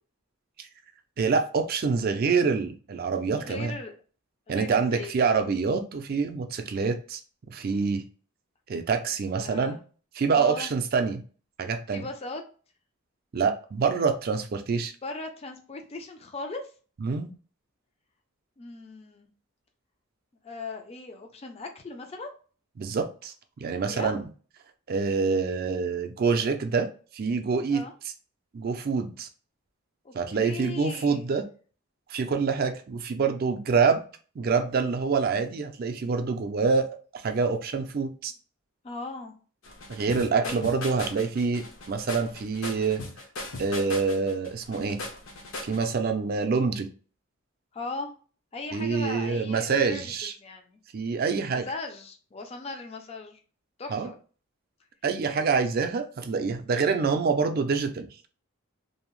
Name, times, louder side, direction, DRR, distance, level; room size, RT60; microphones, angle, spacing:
voice 1, 1.2-3.7 4.5-7.2 7.5-8.0 8.7-9.8 10.1-11.2 11.6-12.0 13.3-14.9 17.0-17.3 22.8-24.2 24.9-26.9 27.1-27.8 28.5-29.3 30.1-31.4 32.1-34.0 34.4-36.9 37.1-38.3 39.9-43.0 43.6-45.0 45.6-46.9 48.7-50.3 50.9-51.6 53.9-54.1 55.0-58.1, right 5 dB, 45° right, 7 dB, 0.3 m, -26 dB
voice 2, 3.4-3.9 4.5-5.2 9.4-9.8 10.3-10.7 11.9-12.4 15.0-16.7 18.6-19.3 20.4-22.3 23.8-24.1 27.7-27.9 30.0-30.1 30.4-31.4 38.8-39.3 40.4-40.7 47.7-48.1 48.5-50.8 51.5-53.4 53.8-54.2, left 3 dB, 30° left, 4 dB, 0.3 m, -38 dB
sound 1, 39.6-45.9, left 2 dB, 65° left, 0.6 m, -38 dB
2.6 x 2.0 x 3.0 m, 0.39 s
head